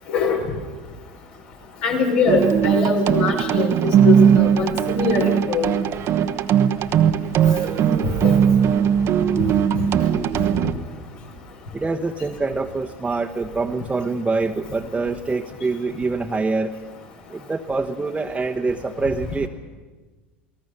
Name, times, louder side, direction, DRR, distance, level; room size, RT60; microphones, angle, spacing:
voice 1, 1.8-3.7 4.0-5.7 8.2-8.3, left 4 dB, 70° left, 1 dB, 5.4 m, -22 dB
sound 1, 2.3-10.7, right 8 dB, 45° right, 1.1 m, -19 dB
voice 2, 11.7-16.7 17.3-19.5, right 3 dB, 15° right, 1 dB, 1.2 m, -25 dB
29.0 x 18.0 x 6.6 m, 1.3 s
hypercardioid pair, 90°, 6 cm